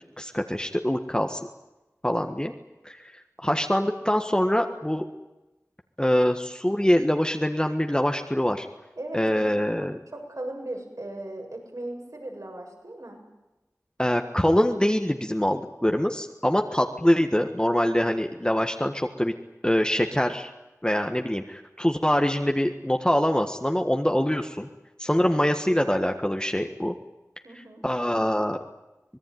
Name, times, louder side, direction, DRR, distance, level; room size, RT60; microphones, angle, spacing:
voice 1, 0.2-1.4 2.0-2.5 2.8-3.1 3.4-5.0 6.0-8.7 9.1-10.0 14.0-19.3 19.6-20.5 20.8-24.7 25.0-26.9 27.5-28.6, equal, 15° left, 4 dB, 1.6 m, -24 dB
voice 2, 9.0-9.5 9.8-13.2 27.4-27.8, right 1 dB, 70° right, 1 dB, 7.7 m, -38 dB
25.0 x 20.0 x 9.4 m, 1.0 s
wide cardioid pair, 40°, 6 cm